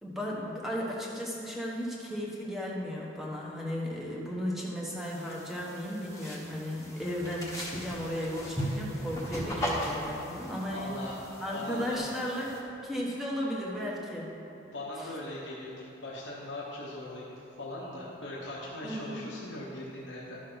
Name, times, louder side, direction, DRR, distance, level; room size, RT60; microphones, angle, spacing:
voice 1, 0.0-10.9 11.4-14.3 15.0-15.1 18.8-19.3, equal, ahead, -4 dB, 1.1 m, -35 dB
sound 1, 5.0-12.6, equal, 15° left, 1.2 m, -38 dB
voice 2, 10.7-11.2 11.5-12.0 14.7-20.4, left 1 dB, 80° left, -5 dB, 1.1 m, -40 dB
12.0 x 6.4 x 3.9 m, 2.9 s
head